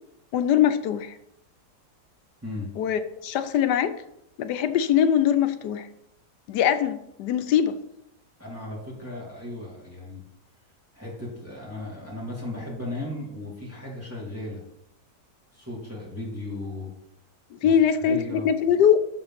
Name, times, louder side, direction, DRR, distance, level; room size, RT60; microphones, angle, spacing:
voice 1, 0.3-1.2 2.8-3.9 4.4-5.9 6.5-7.8 17.6-19.0, left 9 dB, 75° left, 10 dB, 1.2 m, -22 dB
voice 2, 8.4-10.2 10.9-14.6 15.5-16.9 17.6-17.7 18.0-18.5, left 2 dB, 10° right, -5 dB, 2.5 m, -36 dB
6.9 x 5.8 x 5.8 m, 0.79 s
omnidirectional pair, 1.9 m